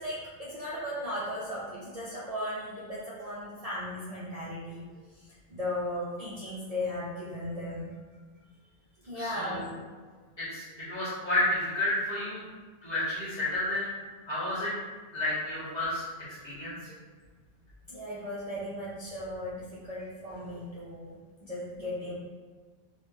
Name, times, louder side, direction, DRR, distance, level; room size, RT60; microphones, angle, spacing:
voice 1, 0.0-4.8 5.5-8.0 9.0-9.7 17.9-22.1, left 1 dB, 50° right, -7 dB, 0.5 m, -36 dB
voice 2, 9.1-9.7 10.4-12.4 12.8-13.9 14.3-14.7 15.1-16.0 16.4-16.9, left 1 dB, 45° left, -11 dB, 1.5 m, -31 dB
3.3 x 2.3 x 3.1 m, 1.5 s
omnidirectional pair, 1.1 m